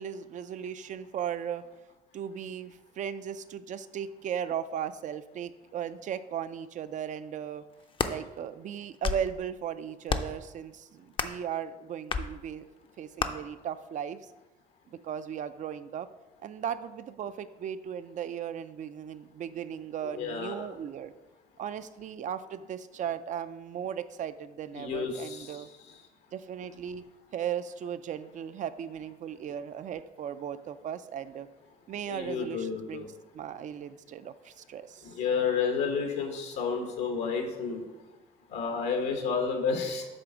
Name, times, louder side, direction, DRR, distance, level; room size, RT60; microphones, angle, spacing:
voice 1, 0.0-1.6 2.1-7.6 8.1-12.7 13.0-14.2 14.9-16.1 16.4-21.1 21.6-25.7 26.3-27.0 27.3-31.5 31.9-33.1 33.3-35.1, right 9 dB, 45° right, 13 dB, 0.4 m, -37 dB
sound 1, 7.7-8.2 8.8-9.3 10.1-10.4 11.1-11.4 12.1-12.3 13.2-13.3, left 5 dB, 30° left, 0.5 m, -30 dB
voice 2, 20.2-20.7 24.8-25.6 32.1-33.1 35.0-37.8 38.5-40.1, left 5 dB, 85° left, 3 dB, 1.1 m, -31 dB
7.8 x 3.4 x 6.2 m, 1.1 s
cardioid pair, 110°, 17 cm